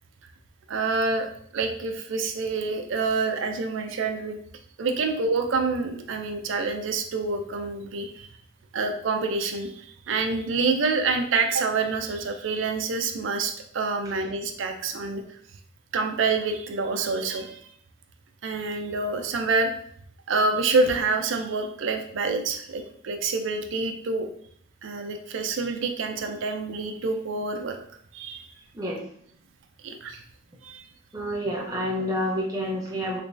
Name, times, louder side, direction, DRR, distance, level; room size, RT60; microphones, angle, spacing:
voice 1, 0.7-1.3 1.5-4.4 4.8-8.3 8.7-15.2 15.9-17.6 18.4-19.7 20.3-24.3 24.8-27.8 28.1-28.5 29.8-30.2 30.6-30.8, right 4 dB, 65° right, 5 dB, 0.4 m, -27 dB
voice 2, 31.1-33.2, equal, 20° right, -3 dB, 0.6 m, -28 dB
3.4 x 3.0 x 2.5 m, 0.65 s
head